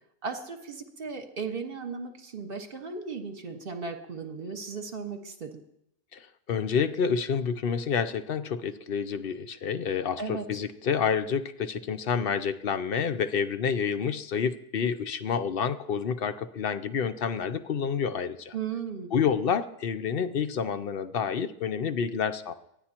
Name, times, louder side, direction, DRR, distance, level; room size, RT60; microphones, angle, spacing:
voice 1, 0.2-5.6 10.2-10.4 18.5-19.1, right 5 dB, 40° right, 4 dB, 1.6 m, -36 dB
voice 2, 6.1-18.6 19.1-22.5, left 6 dB, 55° left, 12 dB, 0.6 m, -29 dB
23.0 x 16.0 x 2.9 m, 0.77 s
omnidirectional pair, 1.6 m